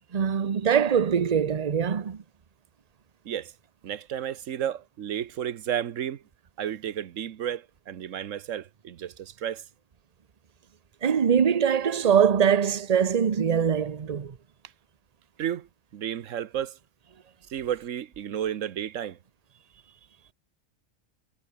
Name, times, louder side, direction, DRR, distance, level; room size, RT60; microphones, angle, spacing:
voice 1, 0.1-2.2 11.0-14.3, right 7 dB, 35° right, 0.8 m, -23 dB
voice 2, 3.8-6.2 6.6-9.6 15.4-15.7 15.9-16.8 17.5-19.2, right 10 dB, 90° right, 1.3 m, -32 dB
omnidirectional pair, 1.3 m